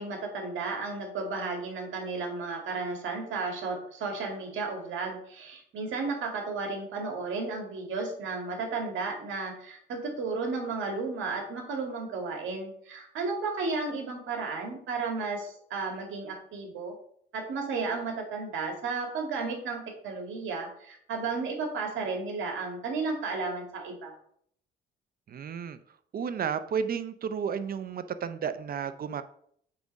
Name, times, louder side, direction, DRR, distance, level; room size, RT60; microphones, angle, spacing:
voice 1, 0.0-17.0 17.3-24.2, right 4 dB, 75° right, 2 dB, 1.9 m, -33 dB
voice 2, 25.3-25.8 26.1-29.2, right 7 dB, 50° right, 12 dB, 0.5 m, -32 dB
7.7 x 3.6 x 5.2 m, 0.65 s
cardioid pair, 90°, 20 cm